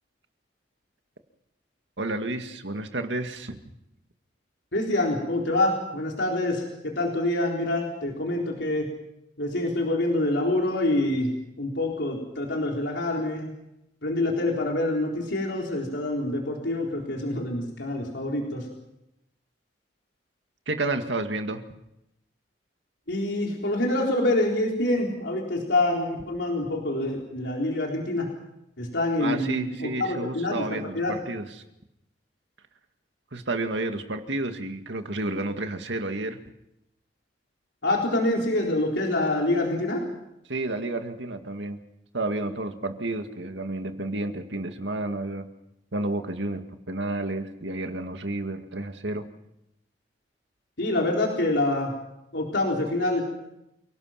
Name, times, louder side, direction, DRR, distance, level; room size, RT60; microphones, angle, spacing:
voice 1, 2.0-3.6 20.7-21.6 29.2-31.6 33.3-36.4 40.5-41.8 42.1-45.5 45.9-49.3, right 2 dB, 80° right, 6 dB, 2.0 m, -31 dB
voice 2, 4.7-8.9 9.4-13.5 14.0-18.7 23.1-28.3 28.8-31.1 37.8-40.1 50.8-51.9 52.3-53.2, left 1 dB, 75° left, -1 dB, 4.1 m, -26 dB
28.5 x 18.0 x 5.9 m, 0.86 s
head